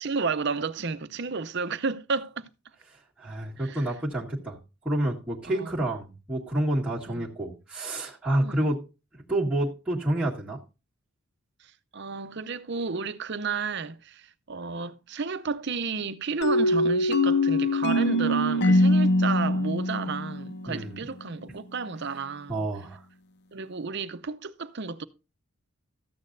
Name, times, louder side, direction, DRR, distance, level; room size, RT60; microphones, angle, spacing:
voice 1, 0.0-2.5 3.6-3.9 5.5-5.8 7.1-7.3 8.4-8.6 11.6-22.7 23.5-25.0, right 4 dB, 50° right, 0.6 m, -32 dB
voice 2, 2.9-8.8 9.1-10.6 20.7-21.0 22.5-23.0, right 1 dB, 5° right, 1.7 m, -29 dB
sound 1, 16.4-21.1, left 1 dB, 50° left, 0.6 m, -23 dB
14.0 x 8.6 x 2.6 m
head